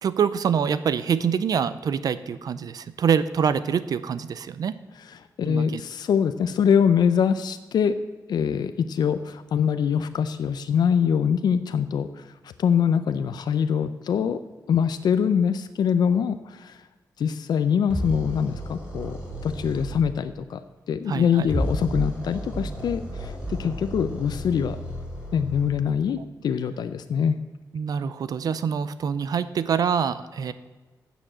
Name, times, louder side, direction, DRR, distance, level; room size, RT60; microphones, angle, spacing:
voice 1, 0.0-4.8 5.4-5.8 21.1-21.5 27.7-30.5, right 7 dB, 65° right, 14 dB, 0.5 m, -25 dB
voice 2, 5.4-7.9 8.3-12.2 12.6-14.4 14.7-16.8 17.2-20.6 20.9-23.3 23.6-24.8 25.3-27.4, left 7 dB, 85° left, 11 dB, 0.5 m, -23 dB
sound 1, 17.9-19.9 21.4-25.7, equal, 15° right, 3.5 m, -32 dB
8.6 x 7.0 x 7.6 m, 1.2 s
wide cardioid pair, 140°, 7 cm